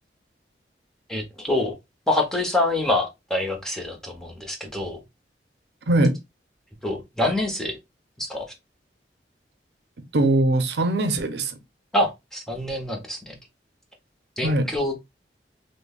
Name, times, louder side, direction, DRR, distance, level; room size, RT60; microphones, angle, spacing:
voice 1, 1.1-1.7 2.1-5.0 6.8-7.8 8.2-8.4 11.9-13.4 14.4-15.0, left 1 dB, 5° left, 0.8 m, -26 dB
voice 2, 5.9-6.2 10.1-11.6 14.4-14.7, right 1 dB, 75° right, 0.6 m, -21 dB
5.2 x 2.1 x 2.3 m
head